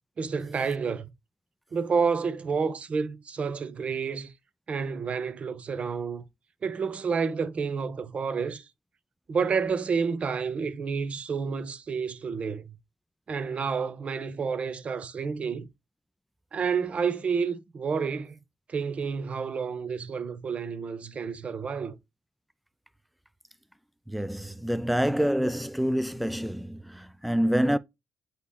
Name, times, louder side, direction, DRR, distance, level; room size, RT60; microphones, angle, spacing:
voice 1, 0.2-1.1 1.7-4.3 4.7-6.2 6.6-8.7 9.3-12.8 13.3-15.7 16.5-18.4 18.7-22.0, right 5 dB, 45° right, 0.6 m, -29 dB
voice 2, 24.1-27.8, equal, ahead, 0.4 m, -27 dB
8.1 x 3.0 x 2.2 m
hypercardioid pair, 45°, 3 cm